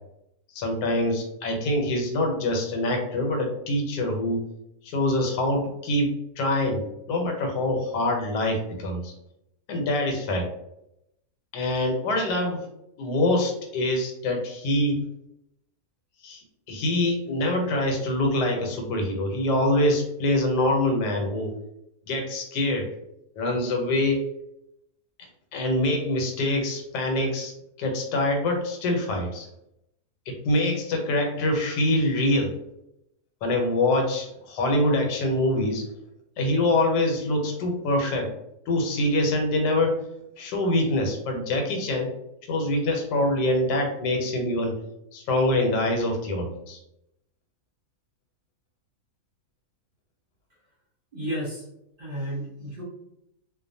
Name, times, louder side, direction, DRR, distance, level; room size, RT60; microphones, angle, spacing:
voice 1, 0.5-4.4 4.8-9.1 9.7-10.4 11.5-12.6 13.0-15.0 16.2-21.5 22.1-22.9 23.4-24.2 25.5-27.5 27.8-29.5 30.3-32.5 33.4-35.9 36.4-38.3 38.7-39.9 40.4-42.1 42.5-44.7 45.1-46.8, left 1 dB, 90° left, 2 dB, 1.3 m, -25 dB
voice 2, 51.1-51.6 52.0-52.8, right 1 dB, 40° right, -6 dB, 0.9 m, -32 dB
2.5 x 2.4 x 2.6 m, 0.82 s
omnidirectional pair, 1.8 m